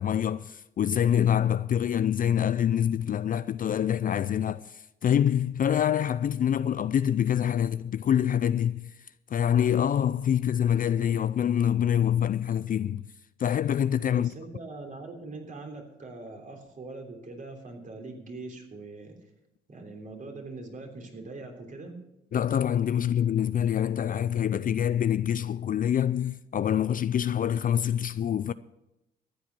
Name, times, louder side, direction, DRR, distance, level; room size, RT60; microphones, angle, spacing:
voice 1, 0.0-8.9 9.3-13.1 13.4-14.3 22.3-28.5, left 9 dB, 45° left, 0.4 m, -25 dB
voice 2, 14.1-19.2 19.7-22.0, right 3 dB, 40° right, 3.3 m, -42 dB
14.0 x 9.3 x 6.0 m
cardioid pair, 90°, 20 cm